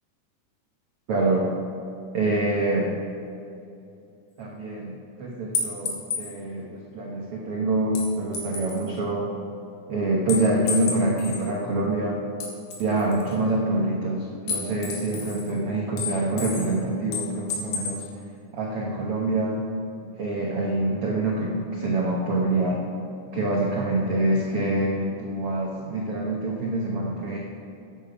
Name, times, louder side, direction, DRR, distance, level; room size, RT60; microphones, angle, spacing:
voice 1, 1.1-1.5 2.1-2.9 4.4-9.3 9.9-12.2 12.8-18.1 18.5-19.6 20.2-22.8 23.3-27.4, right 2 dB, 75° right, -2 dB, 1.3 m, -26 dB
bullet shells falling on the floor, 5.5-6.3 8.0-8.9 10.3-11.5 12.4-13.3 14.5-15.5 16.0-16.8 17.1-18.1, left 5 dB, 70° left, 3.5 m, -31 dB
14.5 x 9.8 x 5.1 m, 2.6 s
omnidirectional pair, 4.5 m